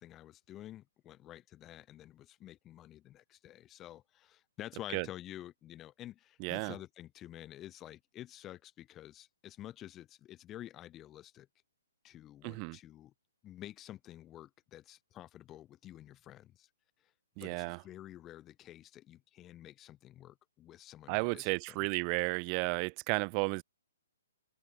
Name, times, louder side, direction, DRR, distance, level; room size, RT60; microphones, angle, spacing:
voice 1, 0.0-11.5 12.0-13.1 13.4-16.7 17.4-21.9, left 13 dB, 10° left, 2.8 m, -50 dB
voice 2, 6.4-6.7 12.4-12.8 17.4-17.8 21.1-23.6, right 40 dB or more, 20° right, 0.9 m, -33 dB
open air
hypercardioid pair, 180°, 0 cm